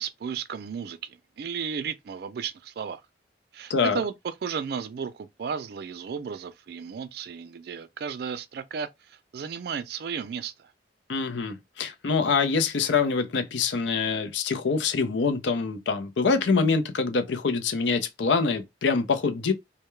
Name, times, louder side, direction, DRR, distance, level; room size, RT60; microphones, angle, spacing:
voice 1, 0.0-3.0 3.5-10.7, right 6 dB, 55° right, 0.3 m, -34 dB
voice 2, 3.7-4.0 11.1-19.5, left 4 dB, 75° left, 0.5 m, -25 dB
2.2 x 2.1 x 3.0 m
head